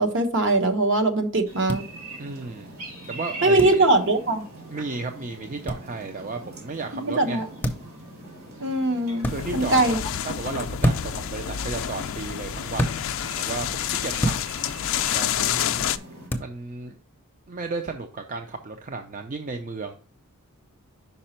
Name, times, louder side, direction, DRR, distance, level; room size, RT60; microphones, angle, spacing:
voice 1, 0.0-1.9 3.4-4.4 6.9-7.5 8.6-10.0, right 2 dB, 55° right, 5 dB, 1.0 m, -21 dB
sound 1, 1.5-16.3, right 2 dB, 75° right, 2.8 m, -42 dB
sound 2, 1.7-1.8 3.6-3.8 5.7-5.8 7.6-7.9 9.2-9.4 10.8-11.2 12.8-13.0 14.2-14.4 16.3-16.5, equal, 10° left, 0.6 m, -25 dB
voice 2, 2.2-2.7 3.1-3.8 4.7-7.4 9.3-10.0 10.2-13.0 13.4-14.3 15.1-15.9 16.4-17.0 17.5-19.9, right 3 dB, 35° right, 5 dB, 0.5 m, -34 dB
sound 3, 9.3-16.0, left 10 dB, 60° left, 0.4 m, -29 dB
5.5 x 5.0 x 4.3 m, 0.39 s
head